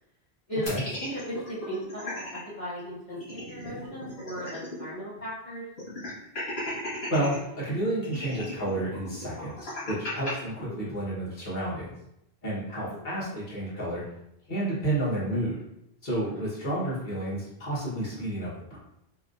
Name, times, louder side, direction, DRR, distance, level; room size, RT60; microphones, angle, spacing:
sound 1, 0.7-2.4 2.8-2.9 3.1-4.9 5.2-5.3 5.8-7.4 8.0-10.3, left 1 dB, 80° left, 1.5 m, -36 dB
voice 1, 1.0-2.1 2.6-5.6 10.7-11.0 12.8-13.0 16.2-16.5, equal, 35° left, -11 dB, 1.2 m, -37 dB
voice 2, 7.1-12.0 12.4-14.0 14.5-15.6 16.0-18.8, right 1 dB, 50° left, -7 dB, 1.3 m, -30 dB
3.5 x 2.4 x 2.5 m, 0.80 s
omnidirectional pair, 1.1 m